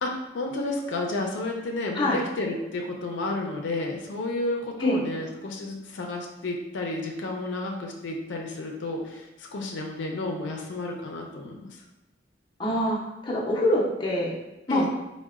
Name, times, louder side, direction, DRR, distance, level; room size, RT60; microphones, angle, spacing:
voice 1, 0.0-11.8 14.7-14.9, left 2 dB, 85° left, 1 dB, 0.4 m, -31 dB
voice 2, 12.6-14.4 14.7-14.9, left 1 dB, 25° left, -4 dB, 0.5 m, -25 dB
3.8 x 2.1 x 2.3 m, 1.0 s
head